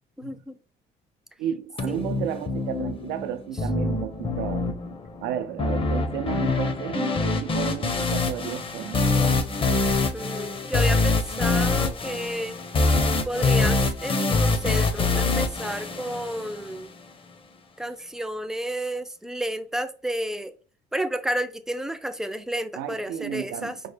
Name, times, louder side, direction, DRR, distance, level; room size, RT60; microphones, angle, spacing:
voice 1, 0.2-0.6 1.9-2.0 10.1-12.6 13.2-16.9 17.8-20.6 20.9-23.8, right 1 dB, 5° right, 0.4 m, -31 dB
voice 2, 1.4-4.8 5.2-9.0 22.7-23.8, right 10 dB, 90° right, 0.5 m, -32 dB
sound 1, 1.8-16.8, left 3 dB, 30° left, 0.7 m, -25 dB
5.1 x 2.1 x 3.3 m
cardioid pair, 110°, 17 cm